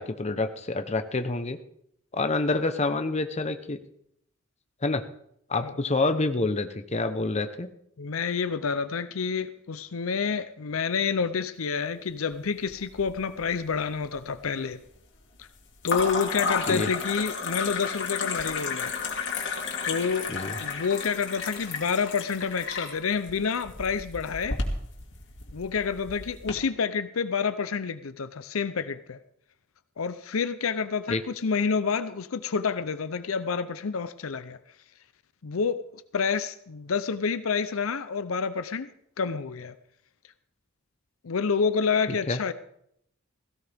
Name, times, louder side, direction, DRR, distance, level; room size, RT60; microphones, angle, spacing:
voice 1, 0.0-1.6 2.1-3.8 4.8-5.0 5.5-7.7 16.7-16.9 20.3-20.5 31.1-31.2 42.3-42.4, left 3 dB, 30° left, 8 dB, 0.9 m, -27 dB
voice 2, 8.0-14.8 15.4-15.5 15.8-18.9 19.8-24.6 25.5-29.2 30.0-34.6 35.4-38.9 39.2-39.7 41.2-42.5, left 5 dB, 80° left, 12 dB, 0.6 m, -28 dB
sound 1, 12.7-13.4 13.7-14.4 15.8-26.5, left 5 dB, 60° left, 2.5 m, -32 dB
17.0 x 16.0 x 3.5 m, 0.73 s
head